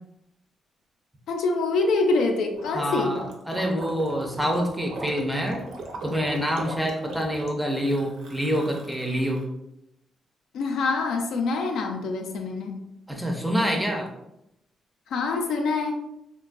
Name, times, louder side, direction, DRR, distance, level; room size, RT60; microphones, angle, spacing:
voice 1, 1.3-3.2 10.5-12.8 15.1-16.0, left 3 dB, 85° left, 3 dB, 0.4 m, -25 dB
Gurgling, 2.5-9.4, right 2 dB, 70° right, 0.6 m, -39 dB
voice 2, 2.7-5.6 6.0-9.4 13.1-14.1, equal, ahead, 1 dB, 0.4 m, -26 dB
3.8 x 2.2 x 2.5 m, 0.83 s
wide cardioid pair, 165°, 0 cm